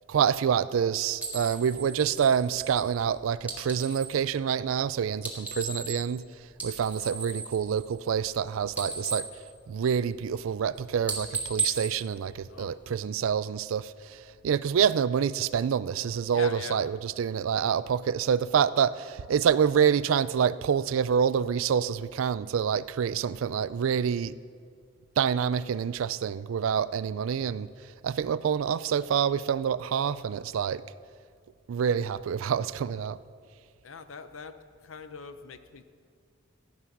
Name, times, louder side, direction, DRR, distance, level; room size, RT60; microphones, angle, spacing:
voice 1, 0.1-6.2 6.6-9.3 9.7-14.2 14.4-24.3 25.2-27.7 28.0-30.8 31.7-33.2, right 7 dB, 90° right, 17 dB, 0.4 m, -27 dB
sound 1, 1.2-4.2 5.1-6.2 6.5-8.4 8.6-10.2 10.6-10.8 11.0-12.9, right 5 dB, 10° right, 1.7 m, -36 dB
voice 2, 16.3-16.8 33.8-34.6 34.8-35.8, left 5 dB, 80° left, 11 dB, 0.7 m, -42 dB
15.0 x 9.7 x 6.0 m, 2.1 s
head